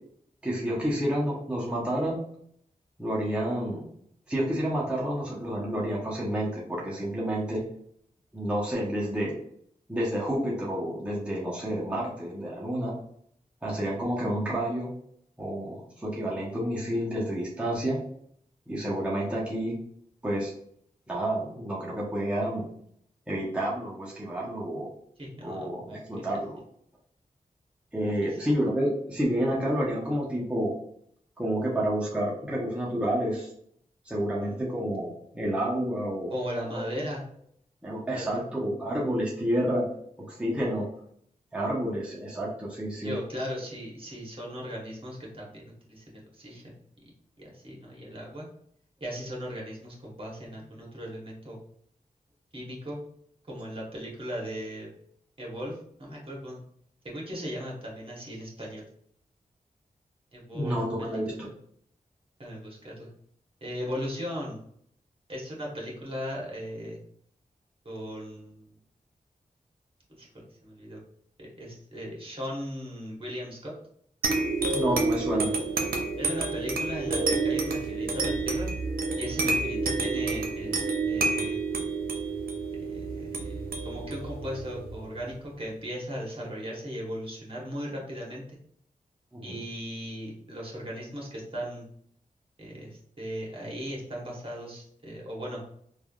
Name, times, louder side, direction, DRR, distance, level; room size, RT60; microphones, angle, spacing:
voice 1, 0.4-2.2 3.0-3.8 4.3-7.6 8.3-9.4 9.9-12.9 13.6-14.9 15.4-18.0 18.7-19.7 20.2-20.5 21.1-22.6 23.3-24.9 25.4-26.6 27.9-30.7 31.4-33.5 34.0-36.3 36.7-36.8 37.8-39.9 40.3-40.9 41.5-43.1 60.5-61.3 74.7-75.5 89.3-89.6, equal, 10° right, -6 dB, 0.8 m, -29 dB
voice 2, 25.2-26.2 28.2-28.4 34.4-34.6 36.3-37.2 38.1-38.4 43.0-46.7 47.4-48.5 49.0-51.6 52.5-53.0 53.5-54.9 55.4-56.6 57.0-58.9 60.3-61.5 62.4-63.1 63.6-64.6 65.3-67.0 67.8-68.8 70.1-71.0 71.4-73.7 76.2-78.7 79.2-81.6 82.8-83.5 83.8-88.4 89.4-91.9 92.6-95.6, equal, 40° right, -3 dB, 1.1 m, -37 dB
sound 1, 74.2-85.3, right 3 dB, 85° right, 0.5 m, -29 dB
3.3 x 2.3 x 2.3 m, 0.67 s
cardioid pair, 65°, 15 cm